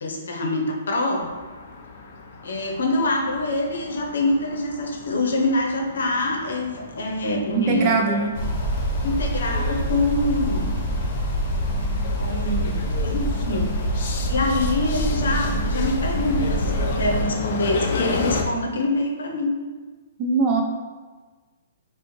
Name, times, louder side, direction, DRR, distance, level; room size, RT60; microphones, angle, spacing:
voice 1, 0.0-1.3 2.4-7.9 9.0-10.8 12.2-13.8 14.3-19.6, left 2 dB, 80° left, 2 dB, 0.7 m, -25 dB
sound 1, 1.2-18.4, left 4 dB, 50° left, 0.4 m, -33 dB
voice 2, 7.7-8.3 20.2-20.6, right 4 dB, 25° right, 2 dB, 0.4 m, -21 dB
sound 2, 8.3-17.2, equal, 30° left, 1.0 m, -25 dB
4.9 x 2.2 x 3.1 m, 1.3 s
hypercardioid pair, 165°, 0 cm